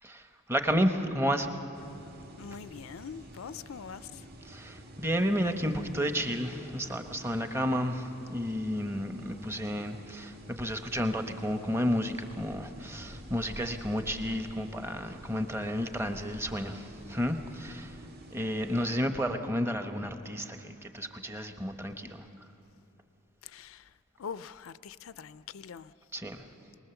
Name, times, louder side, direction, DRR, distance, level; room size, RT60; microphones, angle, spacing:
voice 1, 0.0-1.5 4.4-18.0 18.3-22.2 26.1-26.5, equal, 10° right, 0.9 m, -31 dB
sound 1, 1.7-18.8, right 1 dB, 50° right, 2.2 m, -49 dB
voice 2, 2.4-4.3 23.4-23.9 24.2-25.9, left 7 dB, 80° left, 0.4 m, -43 dB
23.0 x 20.0 x 7.0 m
head